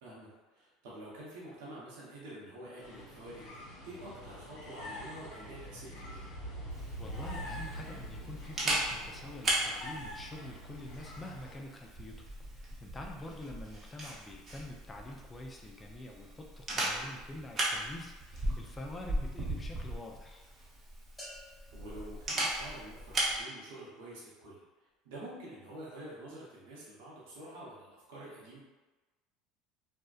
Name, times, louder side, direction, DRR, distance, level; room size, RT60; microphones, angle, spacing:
voice 1, 0.0-6.3 13.3-13.4 21.7-24.6 25.0-28.6, right 1 dB, 80° right, -6 dB, 0.8 m, -48 dB
sound 1, 2.8-11.5, equal, 75° left, 0.9 m, -45 dB
Camera, 6.7-23.4, right 1 dB, 35° right, 0.8 m, -38 dB
voice 2, 7.0-12.3 12.5-20.4, left 1 dB, 20° left, 0 dB, 0.4 m, -46 dB
sound 2, 21.2-23.2, left 1 dB, 5° left, 0.9 m, -53 dB
2.6 x 2.1 x 2.3 m, 1.2 s
supercardioid pair, 90°, 0 cm